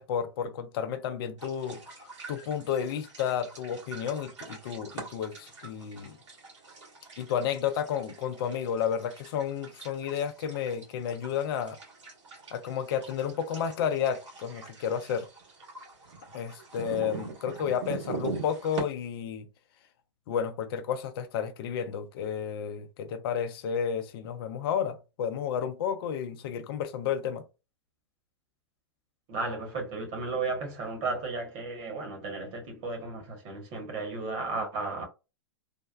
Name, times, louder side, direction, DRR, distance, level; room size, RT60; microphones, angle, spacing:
voice 1, 0.0-6.2 7.2-11.8 12.5-15.3 16.3-19.5 20.3-27.4, left 8 dB, 55° left, 0.5 m, -32 dB
sound 1, 1.4-18.8, right 4 dB, 85° right, 1.7 m, -43 dB
voice 2, 29.3-35.1, right 3 dB, 40° right, 1.4 m, -34 dB
3.3 x 2.2 x 2.4 m
hypercardioid pair, 120°, 15 cm